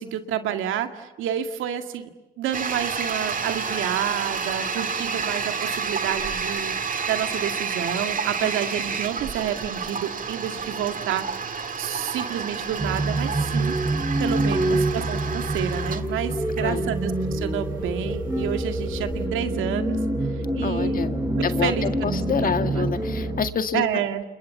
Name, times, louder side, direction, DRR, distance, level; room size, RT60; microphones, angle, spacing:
voice 1, 0.0-2.1 2.4-6.7 7.1-13.8 14.2-20.0 20.5-21.0 21.4-22.9 23.7-24.2, right 10 dB, 90° right, 7 dB, 2.1 m, -29 dB
Toilet flush, 2.5-19.2, right 5 dB, 45° right, 1.9 m, -30 dB
sound 1, 12.8-23.5, right 1 dB, 15° right, 6.0 m, -26 dB
voice 2, 14.5-14.9 16.6-16.9 20.6-23.8, left 6 dB, 45° left, 9 dB, 1.9 m, -28 dB
29.0 x 28.0 x 7.1 m, 1.2 s
cardioid pair, 90°, 20 cm